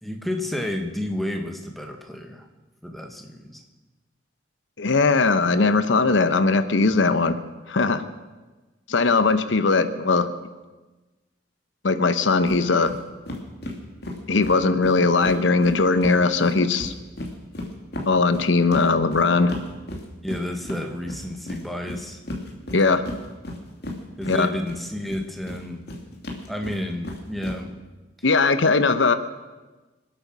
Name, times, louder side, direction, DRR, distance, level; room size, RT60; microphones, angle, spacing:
voice 1, 0.0-2.5 2.8-3.6 20.2-22.2 24.2-25.8 26.5-27.7, left 1 dB, ahead, 3 dB, 1.5 m, -31 dB
voice 2, 4.8-7.4 7.7-8.0 8.9-10.3 11.8-12.9 14.3-16.9 18.1-19.5 22.7-23.0 24.3-24.5 28.2-29.1, left 3 dB, 80° left, 12 dB, 0.9 m, -19 dB
sound 1, 12.5-12.6 12.9-13.0 13.3-16.2 16.4-24.8 25.1-27.6, left 1 dB, 60° left, 2.5 m, -34 dB
26.0 x 8.8 x 6.2 m, 1.2 s
head